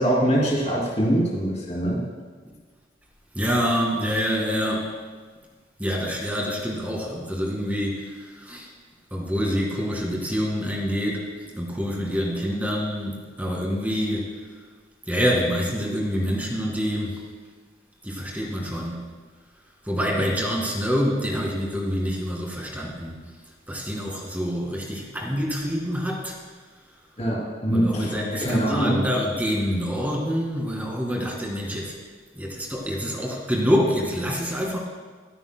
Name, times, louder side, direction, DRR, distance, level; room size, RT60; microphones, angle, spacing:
voice 1, 0.0-2.0 27.2-29.0 33.1-33.3, right 1 dB, 35° left, -5 dB, 2.9 m, -23 dB
voice 2, 3.3-4.9 5.8-8.1 8.4-8.7 9.1-11.3 11.6-14.3 15.1-17.2 18.0-19.0 19.9-23.2 23.7-26.4 27.7-31.9 32.4-34.8, equal, 10° right, -1 dB, 2.1 m, -26 dB
25.5 x 8.9 x 2.2 m, 1.5 s
head